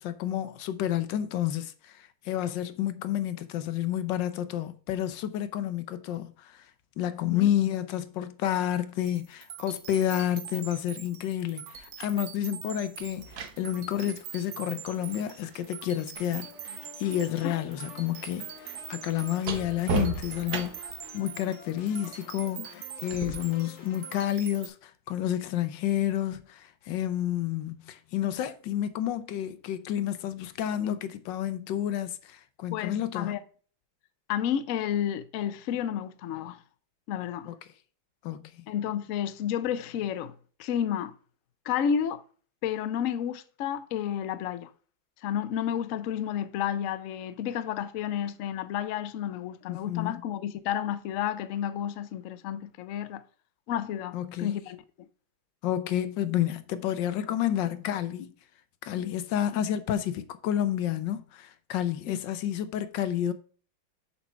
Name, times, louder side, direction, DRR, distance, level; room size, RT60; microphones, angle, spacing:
voice 1, 0.0-6.7 7.0-33.4 37.5-37.6 38.2-38.7 49.7-50.2 54.1-54.6 55.6-58.3 58.8-63.3, left 11 dB, 70° left, 1.3 m, -30 dB
sound 1, 9.0-24.7, right 11 dB, 90° right, 1.6 m, -44 dB
sound 2, 11.7-11.9 13.0-17.0 17.3-21.1 23.1-23.3, right 4 dB, 55° right, 1.4 m, -37 dB
sound 3, 16.1-24.1, left 5 dB, 45° left, 1.1 m, -50 dB
voice 2, 32.7-33.4 34.3-36.6 37.1-37.5 38.7-40.3 40.6-41.1 41.7-42.2 42.6-44.7 45.2-53.2 53.7-55.1 62.1-62.2, left 9 dB, 90° left, 0.7 m, -31 dB
7.1 x 4.3 x 5.6 m
omnidirectional pair, 2.2 m